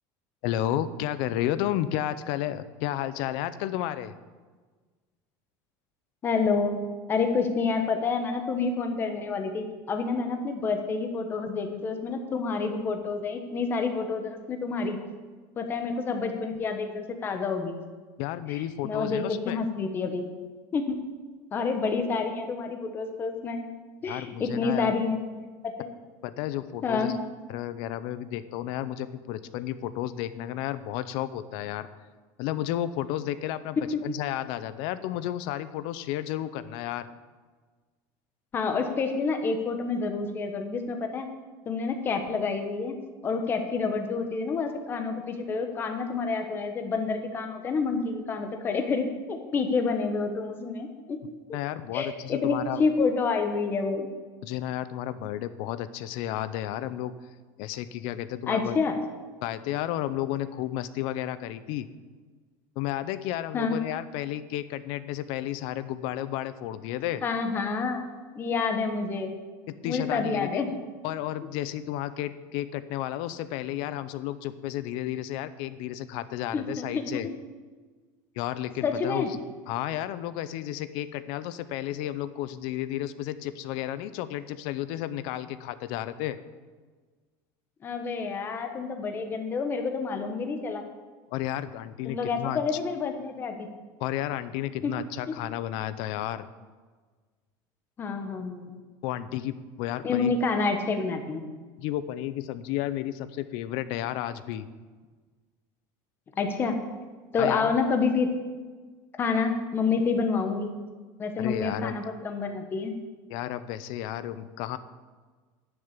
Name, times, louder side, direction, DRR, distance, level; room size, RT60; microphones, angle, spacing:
voice 1, 0.4-4.1 18.2-19.6 24.1-24.9 26.2-27.1 27.5-31.9 32.4-37.1 51.5-52.8 54.4-57.1 57.6-58.8 59.4-61.9 62.8-67.2 69.7-70.6 71.0-77.3 78.4-79.4 79.7-86.4 91.3-92.6 94.0-96.5 99.0-100.3 101.8-104.7 107.4-107.8 111.4-111.9 113.3-114.8, left 12 dB, 60° left, 14 dB, 0.6 m, -32 dB
voice 2, 6.2-15.0 15.6-17.8 18.8-20.3 20.7-21.0 21.5-23.6 24.0-25.2 25.6-25.9 26.8-27.1 33.8-34.0 38.5-41.3 41.6-42.9 43.2-51.2 51.9-54.1 58.5-59.0 63.5-63.8 67.2-68.0 68.3-69.3 69.8-70.7 76.5-77.3 78.8-79.3 87.8-90.8 92.1-93.7 94.8-94.9 95.3-95.4 98.0-98.7 100.0-101.5 106.4-106.8 107.3-108.3 109.2-110.7 111.2-112.9, left 4 dB, 20° left, 6 dB, 1.2 m, -28 dB
10.5 x 6.8 x 8.1 m, 1.4 s
cardioid pair, 170°, 10 cm